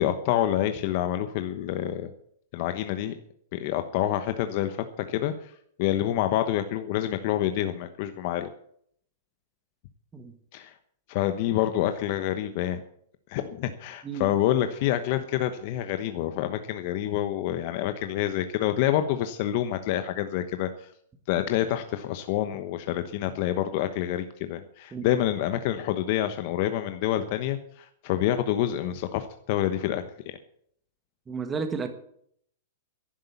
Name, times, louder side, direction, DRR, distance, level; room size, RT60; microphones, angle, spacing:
voice 1, 0.0-2.1 2.5-3.1 3.5-8.5 10.5-10.7 11.1-12.8 13.3-20.9 21.3-30.0, left 12 dB, 50° left, 8 dB, 1.0 m, -27 dB
voice 2, 31.3-31.9, right 5 dB, 15° right, 7 dB, 1.5 m, -32 dB
11.5 x 11.0 x 8.4 m, 0.67 s
hypercardioid pair, 145°, 0 cm